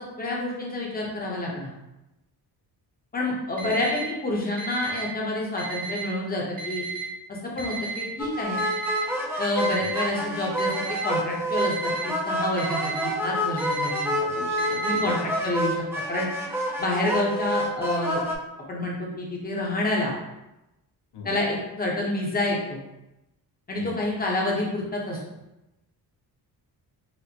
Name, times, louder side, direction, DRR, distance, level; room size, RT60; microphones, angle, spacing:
voice 1, 0.0-1.7 3.1-6.8 7.3-8.6 9.4-14.1 14.8-15.8 16.1-16.3 16.8-18.2 18.7-20.1 21.2-22.8 23.7-25.2, left 1 dB, 20° left, -2 dB, 0.8 m, -28 dB
Alarm, 3.6-4.0 4.6-5.0 5.6-6.0 6.6-7.0 7.6-8.0 8.6-9.0 9.6-10.0 10.6-11.0 11.6-12.0 12.6-13.0 13.6-14.0 14.6-15.0, right 5 dB, 20° right, 0.9 m, -34 dB
sound 1, 8.2-18.4, equal, 5° right, 0.4 m, -28 dB
voice 2, 14.2-15.1 21.1-21.3 23.8-23.9, left 3 dB, 85° left, -1 dB, 0.9 m, -39 dB
4.3 x 2.1 x 2.8 m, 0.94 s
cardioid pair, 110°, 40 cm